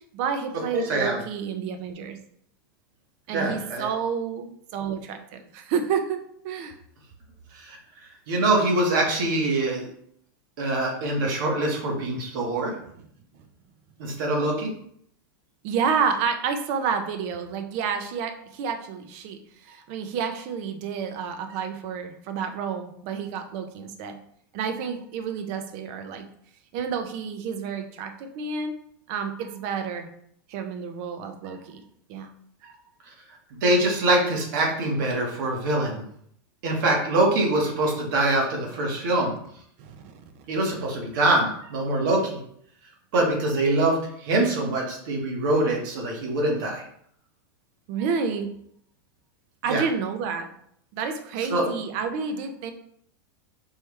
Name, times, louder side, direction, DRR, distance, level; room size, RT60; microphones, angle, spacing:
voice 1, 0.1-2.2 3.3-6.8 15.6-24.2 24.5-26.3 26.7-28.8 29.1-30.1 30.5-31.8 32.1-32.3 32.6-32.8 39.8-40.1 47.9-48.5 49.6-50.5 50.9-52.7, right 6 dB, 40° right, 6 dB, 0.6 m, -30 dB
voice 2, 0.7-1.2 3.3-3.9 7.5-7.8 8.3-9.9 10.6-12.7 14.0-14.7 33.1-33.2 33.5-36.0 36.6-39.3 40.5-42.4 43.1-46.8 49.7-49.8 51.5-51.6, right 2 dB, 60° right, -1 dB, 1.6 m, -24 dB
4.5 x 3.4 x 3.3 m, 0.67 s
supercardioid pair, 165°, 12 cm